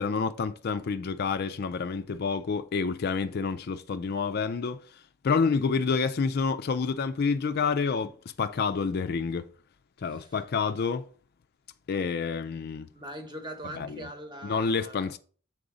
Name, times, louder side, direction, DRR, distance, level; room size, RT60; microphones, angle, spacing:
voice 1, 0.0-4.8 5.2-8.1 8.4-9.4 10.0-11.1 11.9-12.9 13.7-14.1 14.4-15.2, left 5 dB, 45° left, 0.4 m, -28 dB
voice 2, 12.9-15.1, right 1 dB, 20° right, 1.0 m, -41 dB
7.7 x 4.0 x 4.9 m
head